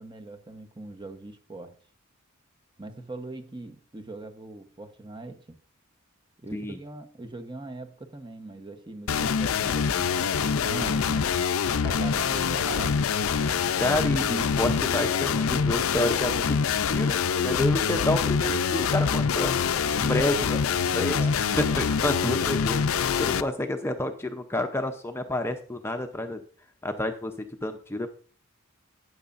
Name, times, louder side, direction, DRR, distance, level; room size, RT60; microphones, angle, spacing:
voice 1, 0.0-1.8 2.8-5.6 6.4-11.3 11.8-13.1 20.0-21.4, right 2 dB, 20° right, 1.0 m, -41 dB
sound 1, 9.1-23.4, left 6 dB, 85° left, 0.5 m, -25 dB
voice 2, 13.8-17.2 17.4-19.6 20.1-20.4 20.9-21.2 21.6-26.4 26.8-27.3 27.6-28.1, left 1 dB, 10° left, 0.7 m, -29 dB
12.5 x 9.5 x 2.6 m
head